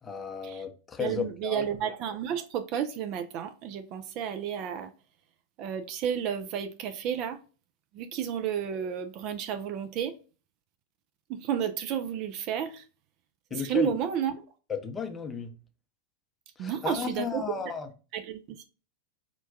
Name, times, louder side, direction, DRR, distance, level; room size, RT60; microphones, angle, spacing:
voice 1, 0.0-1.6 13.5-13.9 14.7-15.5 16.6-17.9, left 6 dB, 15° left, 0.6 m, -34 dB
voice 2, 1.0-4.9 5.6-7.4 7.9-10.2 11.3-12.9 13.5-14.5 16.6-17.5 18.1-18.6, right 8 dB, 40° right, 0.3 m, -32 dB
4.3 x 2.2 x 2.5 m
figure-of-eight pair, 90°, 0 cm